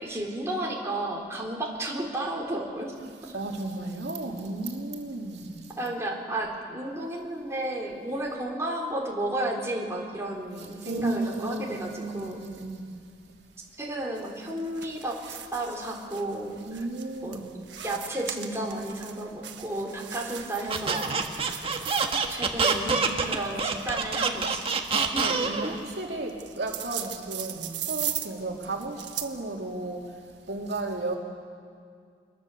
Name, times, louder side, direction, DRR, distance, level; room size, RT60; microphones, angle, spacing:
voice 1, 0.0-2.9 3.3-3.4 5.7-12.4 13.8-16.9 17.2-17.4 17.8-21.3 22.3-24.7 25.1-25.6, right 1 dB, 15° right, -2 dB, 3.2 m, -33 dB
voice 2, 3.3-5.5 10.8-12.9 16.7-17.5 25.2-30.0 30.5-31.2, right 2 dB, 70° right, 0 dB, 2.8 m, -34 dB
sound 1, 14.1-29.4, right 11 dB, 85° right, 1.4 m, -40 dB
Squeak, 20.7-25.7, right 4 dB, 30° right, 1.5 m, -26 dB
24.5 x 22.0 x 6.9 m, 2.2 s
head